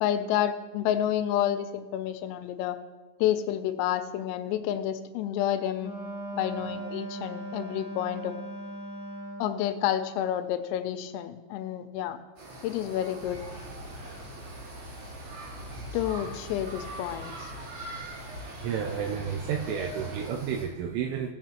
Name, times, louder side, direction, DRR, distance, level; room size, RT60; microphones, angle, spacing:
voice 1, 0.0-2.8 3.2-5.9 6.3-8.3 9.4-12.2 12.6-13.4 15.9-17.5, left 11 dB, 85° left, 9 dB, 3.2 m, -29 dB
Wind instrument woodwind instrument, 5.8-9.7, right 2 dB, 70° left, 1.4 m, -38 dB
sound 1, 12.4-20.6, right 2 dB, 65° right, 5.9 m, -43 dB
sound 2, 13.2-20.3, equal, 40° right, 4.7 m, -43 dB
voice 2, 18.6-21.3, right 8 dB, 80° right, 3 dB, 2.9 m, -31 dB
19.0 x 7.3 x 2.9 m, 1.2 s
omnidirectional pair, 6.0 m